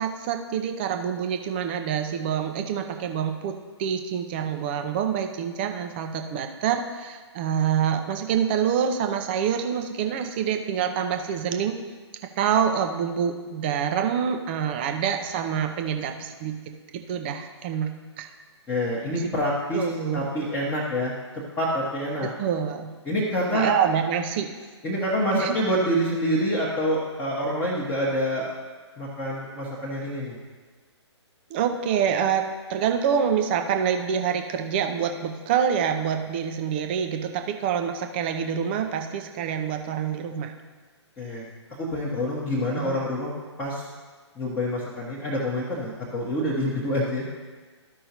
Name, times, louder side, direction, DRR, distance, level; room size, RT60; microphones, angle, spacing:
voice 1, 0.0-11.7 12.4-16.6 16.9-17.9 18.2-18.3 19.7-20.3 22.2-22.9 23.5-24.5 25.3-25.5 31.5-40.5 42.8-43.0, right 8 dB, 20° right, 6 dB, 0.5 m, -26 dB
voice 2, 18.7-19.9 20.1-21.1 21.6-22.3 23.0-23.7 24.8-28.5 29.0-30.4 41.2-43.3 43.6-43.8 44.4-47.2, equal, 10° left, -6 dB, 1.0 m, -26 dB
14.0 x 5.4 x 2.9 m, 1.4 s
figure-of-eight pair, 130°, 15 cm